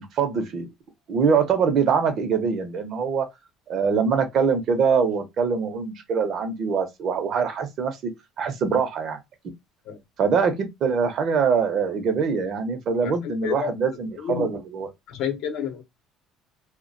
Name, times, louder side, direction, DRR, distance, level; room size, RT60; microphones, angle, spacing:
voice 1, 0.2-0.7 1.1-3.3 3.7-8.1 8.4-9.2 10.2-14.9, right 6 dB, 50° right, 0.6 m, -23 dB
voice 2, 13.0-13.7 14.2-14.5 15.2-15.8, left 8 dB, 65° left, 0.7 m, -29 dB
2.3 x 2.1 x 2.5 m
cardioid pair, 125°, 0 cm